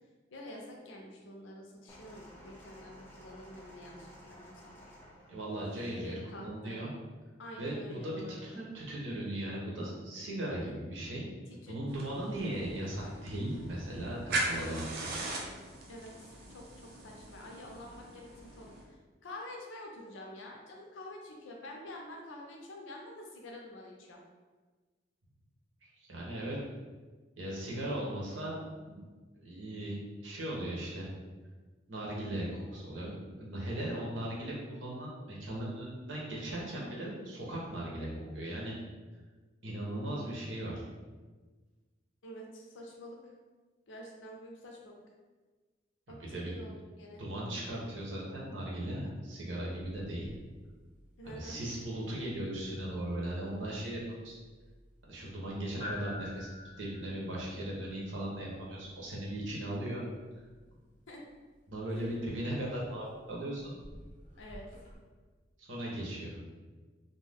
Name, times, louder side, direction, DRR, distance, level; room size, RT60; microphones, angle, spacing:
voice 1, 0.3-4.7 5.8-6.8 7.4-8.6 11.5-11.8 14.3-14.4 15.9-19.0 19.2-24.2 42.2-43.3 43.9-45.0 46.1-47.2 51.2-51.6 61.1-61.2 61.9-62.2 64.4-64.7, left 1 dB, 85° left, 0 dB, 0.6 m, -48 dB
sound 1, 1.9-6.0 6.9-7.0, equal, 10° left, 0.4 m, -54 dB
voice 2, 5.3-6.9 7.6-11.3 11.7-15.1 25.8-26.6 27.4-28.6 28.9-29.1 29.3-31.1 31.9-38.1 38.3-38.7 39.6-40.8 46.1-46.6 47.2-50.3 51.2-54.3 55.1-60.0 61.7-63.7 65.6-66.4, right 1 dB, 85° right, -4 dB, 0.9 m, -38 dB
sound 2, 11.9-18.8, right 2 dB, 55° right, 0.5 m, -40 dB
sound 3, 49.8-65.0, left 2 dB, 40° left, 0.8 m, -52 dB
2.6 x 2.2 x 3.4 m, 1.3 s
head